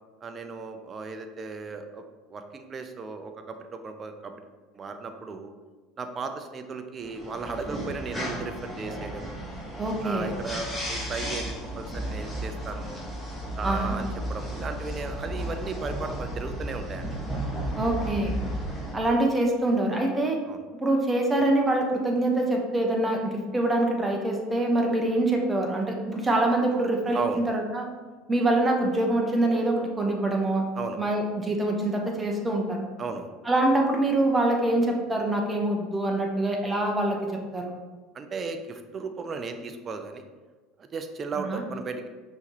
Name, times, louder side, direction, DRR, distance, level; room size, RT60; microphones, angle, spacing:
voice 1, 0.2-2.0 2.3-4.5 4.7-5.5 6.0-9.4 10.0-13.0 13.5-17.3 20.5-20.6 27.1-27.4 30.8-31.0 33.0-33.3 38.1-40.2 40.8-42.1, right 4 dB, 35° right, 7 dB, 0.5 m, -35 dB
sound 1, 7.0-18.9, equal, 5° left, 1.3 m, -34 dB
voice 2, 9.8-10.3 13.6-13.9 17.7-18.4 18.9-20.4 20.7-27.8 28.3-30.6 31.0-32.8 33.4-37.2 37.5-37.7 41.5-41.6, right 1 dB, 15° right, 1 dB, 0.9 m, -25 dB
5.6 x 3.0 x 2.8 m, 1.4 s
hypercardioid pair, 75°, 0 cm